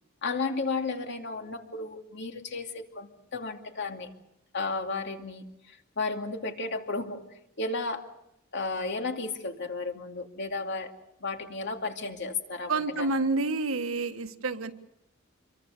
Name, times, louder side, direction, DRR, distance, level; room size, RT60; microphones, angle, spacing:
voice 1, 0.2-4.1 4.5-7.2 7.6-8.1 8.5-10.9 11.2-13.1, left 3 dB, 60° left, 4 dB, 2.6 m, -33 dB
voice 2, 12.7-14.7, right 3 dB, 80° right, 8 dB, 1.6 m, -28 dB
27.0 x 23.0 x 6.8 m, 0.83 s
head